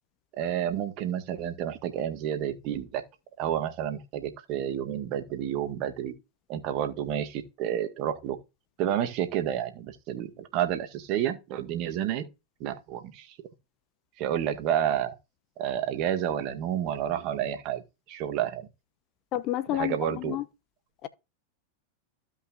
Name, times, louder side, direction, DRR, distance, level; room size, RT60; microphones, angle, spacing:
voice 1, 0.3-3.0 3.4-6.1 6.5-8.4 8.8-12.3 12.6-13.3 14.2-15.1 15.6-17.8 18.1-18.7 19.7-20.4, right 10 dB, 40° right, 1.9 m, -30 dB
voice 2, 19.3-20.4 21.0-21.1, left 13 dB, 40° left, 1.0 m, -30 dB
15.5 x 5.7 x 2.6 m
figure-of-eight pair, 90°, 0 cm